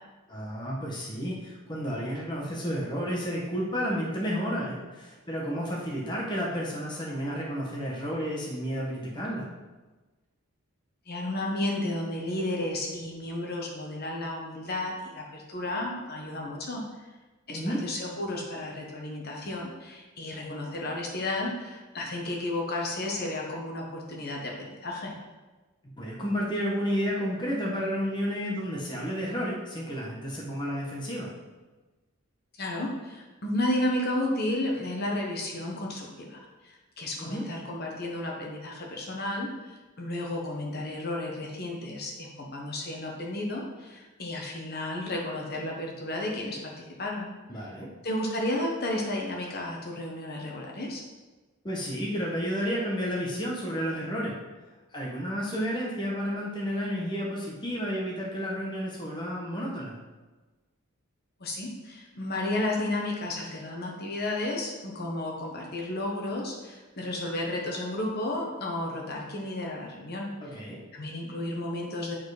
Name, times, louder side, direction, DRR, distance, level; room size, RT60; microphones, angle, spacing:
voice 1, 0.3-9.5 17.5-17.9 26.0-31.3 37.2-37.5 47.5-47.9 51.6-54.3 54.9-59.9 70.4-70.8, equal, 20° left, -4 dB, 1.2 m, -31 dB
voice 2, 11.1-16.8 17.5-25.1 32.6-47.3 48.0-51.0 61.4-70.3 70.9-72.2, left 1 dB, 45° left, -1 dB, 1.3 m, -32 dB
9.2 x 4.4 x 5.0 m, 1.2 s
head